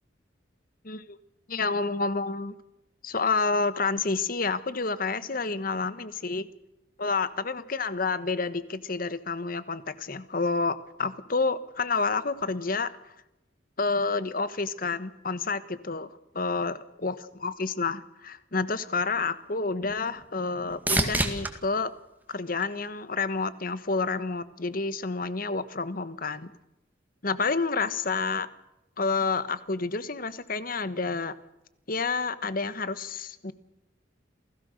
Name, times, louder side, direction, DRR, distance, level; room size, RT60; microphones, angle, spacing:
voice 1, 0.8-1.2 1.5-2.6 3.0-6.5 7.0-12.9 13.8-16.1 16.3-17.1 17.4-21.9 22.3-26.5 27.2-28.5 29.0-31.3 31.9-33.5, left 4 dB, 50° left, 14 dB, 1.2 m, -29 dB
sound 1, 19.1-23.3 23.9-24.5 32.3-32.4, right 2 dB, 10° right, 2.1 m, -33 dB
28.5 x 17.5 x 6.5 m, 0.91 s
head